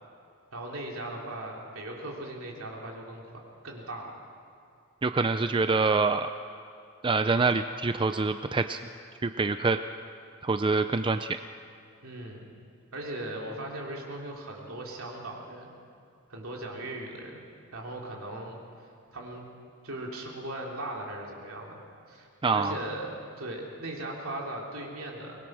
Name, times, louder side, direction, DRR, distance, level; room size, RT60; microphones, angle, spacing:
voice 1, 0.5-3.2 3.6-4.1 12.0-12.5 12.9-15.7 16.3-17.4 17.7-18.6 19.1-19.5 19.8-21.8 22.1-25.5, right 1 dB, 70° right, -1 dB, 3.5 m, -38 dB
voice 2, 5.0-6.3 7.0-8.8 9.2-9.8 10.4-11.4 22.4-22.7, right 4 dB, 25° right, 9 dB, 0.4 m, -25 dB
23.5 x 20.0 x 6.2 m, 2.5 s
head